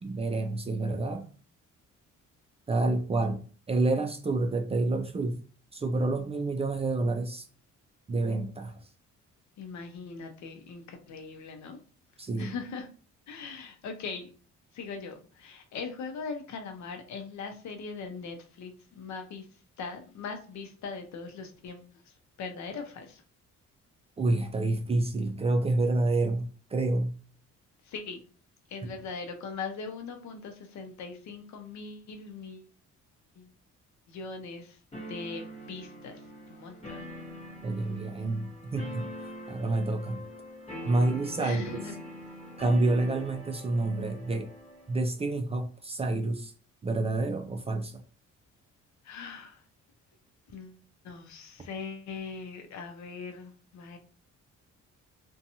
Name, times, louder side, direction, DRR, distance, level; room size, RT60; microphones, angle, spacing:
voice 1, 0.0-1.3 2.7-5.4 5.7-7.4 8.1-8.8 12.2-12.5 24.2-27.1 37.6-39.1 39.5-40.2 40.9-41.8 42.6-44.5 44.9-46.5 46.8-48.0, right 2 dB, 20° right, 6 dB, 0.3 m, -28 dB
voice 2, 9.6-11.8 12.4-12.9 13.3-14.3 14.7-19.5 19.8-23.2 27.8-28.2 28.7-32.7 33.4-33.5 34.1-34.8 35.1-36.2 36.5-37.0 41.4-42.4 49.0-49.6 50.5-50.8 51.0-54.0, left 4 dB, 70° left, 5 dB, 0.6 m, -40 dB
sound 1, 34.9-45.0, equal, 20° left, 0.9 m, -43 dB
2.6 x 2.2 x 2.7 m, 0.39 s
cardioid pair, 90°, 30 cm